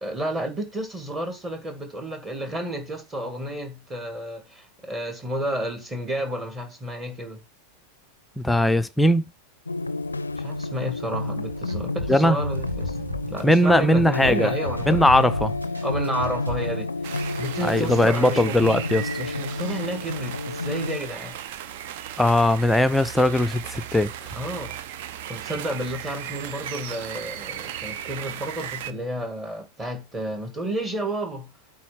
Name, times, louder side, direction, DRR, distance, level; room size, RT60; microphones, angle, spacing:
voice 1, 0.0-7.4 10.4-13.0 13.3-15.3 15.8-16.9 17.4-18.6 19.2-21.3 24.3-24.8 25.3-31.5, right 1 dB, 15° right, 2.2 m, -31 dB
voice 2, 8.4-9.3 12.1-12.4 13.4-14.5 14.9-15.5 17.6-19.1 22.2-24.1, left 1 dB, 5° left, 0.5 m, -19 dB
sound 1, 9.7-21.0, left 2 dB, 80° left, 0.4 m, -30 dB
sound 2, 11.5-16.7, equal, 75° right, 1.8 m, -33 dB
sound 3, 17.0-28.9, right 10 dB, 50° right, 0.7 m, -36 dB
8.5 x 4.0 x 6.3 m
figure-of-eight pair, 90°, 0 cm